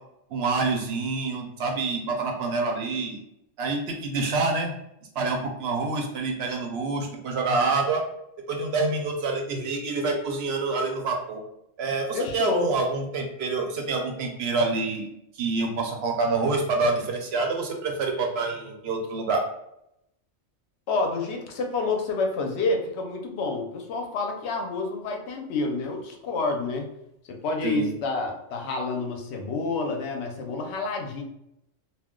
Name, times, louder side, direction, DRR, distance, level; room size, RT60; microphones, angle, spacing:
voice 1, 0.3-3.2 3.6-4.7 5.2-8.0 8.5-11.4 11.8-15.1 15.4-19.4 27.6-27.9, right 3 dB, 65° right, 2 dB, 0.7 m, -27 dB
voice 2, 12.1-12.7 20.9-26.9 27.3-31.2, left 3 dB, 65° left, 2 dB, 0.8 m, -28 dB
2.3 x 2.2 x 3.6 m, 0.81 s
omnidirectional pair, 1.3 m